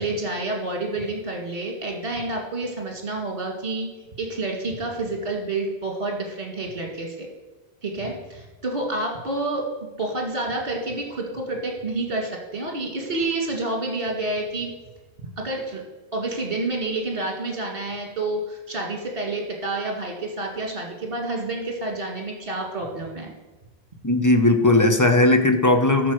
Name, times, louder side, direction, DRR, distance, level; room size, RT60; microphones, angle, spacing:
voice 1, 0.0-3.9 4.2-7.3 7.8-9.7 10.0-14.7 15.4-15.8 16.1-23.3, right 2 dB, 45° right, 1 dB, 2.1 m, -29 dB
voice 2, 24.0-26.1, left 2 dB, 20° left, 6 dB, 0.7 m, -17 dB
13.0 x 4.5 x 6.3 m, 1.2 s
omnidirectional pair, 1.1 m